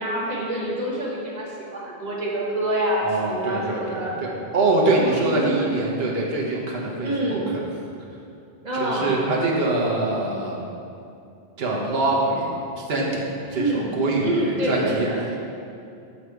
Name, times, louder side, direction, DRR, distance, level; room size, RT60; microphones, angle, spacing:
voice 1, 0.0-4.2 4.9-5.7 7.0-7.5 8.6-9.2 13.5-13.9 14.2-15.2, right 1 dB, 40° right, -4 dB, 1.2 m, -27 dB
voice 2, 3.0-7.6 8.7-10.7 11.6-12.5 12.8-15.1, right 2 dB, 70° right, -3 dB, 1.2 m, -24 dB
6.3 x 4.0 x 4.6 m, 2.6 s
omnidirectional pair, 1.1 m